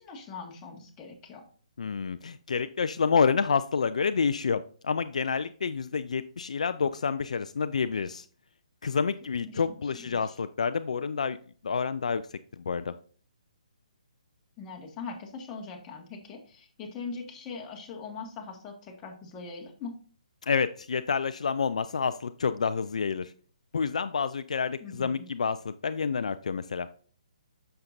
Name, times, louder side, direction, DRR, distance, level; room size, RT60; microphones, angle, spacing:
voice 1, 0.0-1.4 9.4-10.4 14.6-20.0 24.8-25.3, left 4 dB, 20° left, 0 dB, 1.7 m, -41 dB
voice 2, 1.8-8.3 8.8-11.4 11.6-12.2 12.6-12.9 20.4-23.3 23.7-26.9, left 5 dB, 70° left, 12 dB, 0.4 m, -28 dB
8.0 x 6.6 x 2.6 m, 0.43 s
figure-of-eight pair, 140°, 4 cm